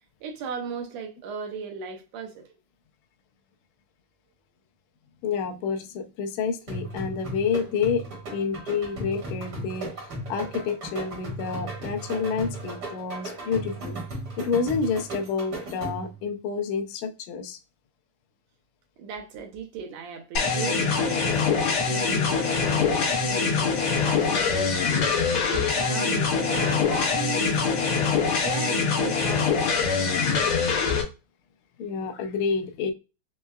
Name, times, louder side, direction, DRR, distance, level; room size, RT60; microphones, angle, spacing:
voice 1, 0.2-2.6 19.0-25.2 25.5-27.6 28.2-30.1, right 5 dB, 75° right, 1.7 m, -37 dB
voice 2, 5.2-14.0 14.4-17.6 31.8-32.9, left 5 dB, 80° left, 1.6 m, -29 dB
sound 1, 6.7-16.2, right 1 dB, 50° right, 1.3 m, -36 dB
sound 2, 20.3-31.0, left 5 dB, 65° left, 1.3 m, -24 dB
5.3 x 2.2 x 2.2 m
omnidirectional pair, 3.6 m